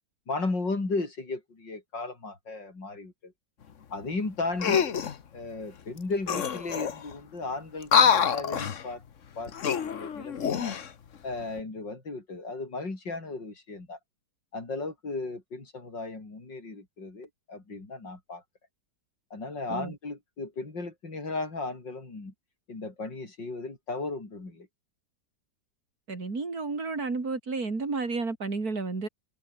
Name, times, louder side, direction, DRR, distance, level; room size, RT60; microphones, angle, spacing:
voice 1, 0.3-3.3 3.9-5.0 5.3-9.0 9.4-9.5 9.8-10.8 11.2-14.0 14.5-18.4 19.3-22.3 22.7-24.7, left 3 dB, 90° left, 6.0 m, -35 dB
sound 1, 4.6-5.2 6.0-6.1 6.3-7.1 7.8-8.8 9.5-10.9 11.4-11.6, left 7 dB, 50° left, 1.4 m, -25 dB
voice 2, 26.1-29.1, right 3 dB, 55° right, 4.0 m, -31 dB
omnidirectional pair, 1.9 m